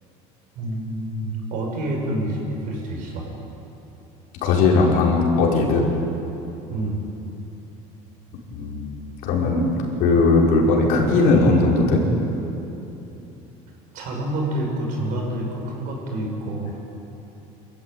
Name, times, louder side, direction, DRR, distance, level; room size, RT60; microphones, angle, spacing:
voice 1, 0.5-3.3 6.7-7.1 13.9-16.8, right 1 dB, 60° right, 0 dB, 6.7 m, -28 dB
voice 2, 4.4-5.9 8.5-8.9 9.2-9.7 10.0-12.0, left 3 dB, 65° left, -2 dB, 5.4 m, -18 dB
26.0 x 14.5 x 9.3 m, 3.0 s
cardioid pair, 135°, 16 cm